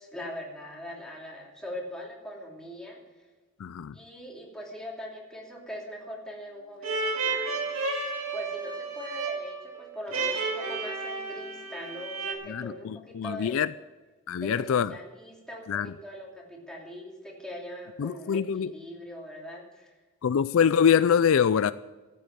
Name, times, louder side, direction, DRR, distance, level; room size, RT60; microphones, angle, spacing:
voice 1, 0.0-3.3 3.9-7.6 8.3-13.7 14.4-19.9, left 1 dB, 5° left, 2.9 m, -41 dB
voice 2, 3.6-3.9 12.5-13.7 14.3-14.9 15.7-15.9 18.0-18.7 20.2-21.7, left 7 dB, 70° left, 0.4 m, -24 dB
sound 1, 6.8-12.3, right 4 dB, 85° right, 2.2 m, -32 dB
13.5 x 8.5 x 7.4 m
head